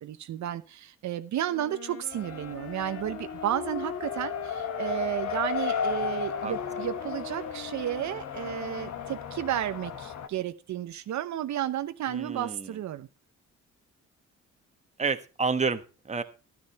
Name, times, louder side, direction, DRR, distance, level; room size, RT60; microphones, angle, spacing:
voice 1, 0.0-13.1, right 11 dB, 70° right, 10 dB, 0.9 m, -32 dB
Wind instrument woodwind instrument, 1.5-9.8, left 6 dB, 50° left, 2.0 m, -42 dB
Race car auto racing, 2.1-10.3, left 7 dB, 70° left, 1.5 m, -35 dB
voice 2, 12.1-12.8 15.0-16.2, right 4 dB, 25° right, 8 dB, 1.3 m, -30 dB
12.5 x 9.7 x 4.2 m, 0.32 s
cardioid pair, 90°, 30 cm